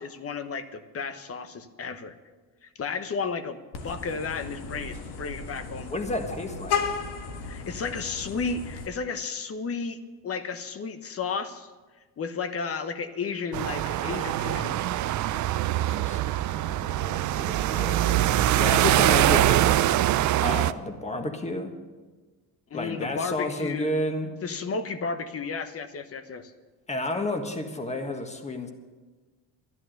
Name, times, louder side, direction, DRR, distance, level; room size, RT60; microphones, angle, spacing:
voice 1, 0.0-2.1 2.6-3.6 3.8-5.9 7.5-10.0 10.2-11.7 12.2-14.7 22.7-23.9 24.4-26.5, left 5 dB, 35° left, 10 dB, 1.0 m, -33 dB
Vehicle horn car horn honking, 3.7-8.9, left 6 dB, 65° left, 1.7 m, -34 dB
voice 2, 5.9-6.8 15.8-19.8 20.4-21.7 22.7-24.3 26.9-28.7, left 2 dB, 15° left, 5 dB, 1.5 m, -31 dB
sound 1, 13.5-20.7, right 13 dB, 45° right, 0.5 m, -23 dB
12.0 x 11.0 x 6.6 m, 1.3 s
cardioid pair, 115°, 42 cm